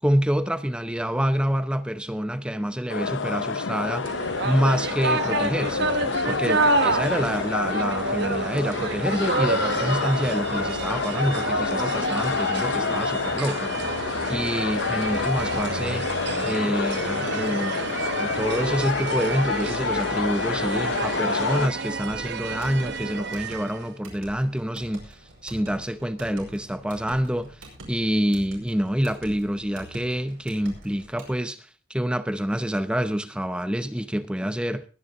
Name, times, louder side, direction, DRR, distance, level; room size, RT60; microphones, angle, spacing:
voice 1, 0.0-4.1 4.4-5.9 6.3-13.7 14.3-16.1 16.4-17.8 18.2-25.2 25.4-27.6 27.9-31.6 31.9-34.9, equal, 5° right, 0.7 m, -27 dB
sound 1, 2.9-21.7, left 4 dB, 60° left, 0.7 m, -28 dB
sound 2, 4.0-23.9, right 3 dB, 55° right, 1.0 m, -29 dB
sound 3, 22.1-31.4, right 1 dB, 75° right, 5.5 m, -46 dB
21.0 x 9.5 x 3.9 m
head